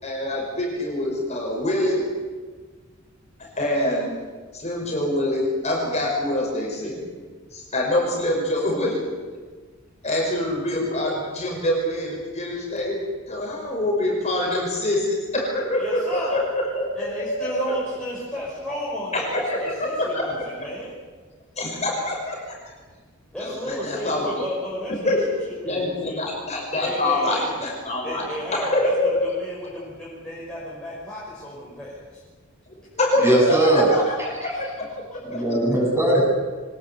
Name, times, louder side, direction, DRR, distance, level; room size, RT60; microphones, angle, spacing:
voice 1, 0.0-2.0 3.6-4.2 4.5-7.1 7.5-9.0 10.0-13.0 13.3-16.9 17.2-17.5 19.1-20.4 21.6-22.5 23.4-24.4 25.0-25.2 25.7-28.2 28.5-29.2 32.9-33.4 33.7-34.1 34.4-34.9, left 1 dB, 30° left, -1 dB, 5.8 m, -25 dB
voice 2, 15.8-16.4 17.0-20.9 23.3-25.2 25.5-26.2 26.8-27.5 28.0-32.2 33.7-34.1 34.5-34.6, equal, 5° left, -7 dB, 5.8 m, -33 dB
voice 3, 33.2-33.9 35.2-36.2, right 1 dB, 10° right, -2 dB, 7.7 m, -19 dB
24.5 x 20.5 x 8.4 m, 1.4 s
head